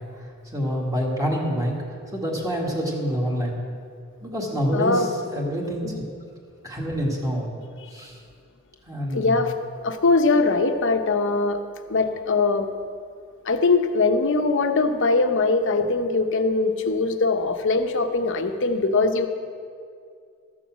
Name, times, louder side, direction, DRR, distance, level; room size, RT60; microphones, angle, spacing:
voice 1, 0.5-1.7 2.1-3.6 4.2-5.9 6.6-7.5 7.9-8.2 8.9-9.5, equal, 15° right, -2 dB, 1.9 m, -26 dB
voice 2, 4.7-5.1 5.8-6.0 9.1-9.5 9.8-11.6 11.9-12.7 13.4-19.3, left 3 dB, 60° left, 7 dB, 0.9 m, -21 dB
13.5 x 7.1 x 7.4 m, 2.3 s
head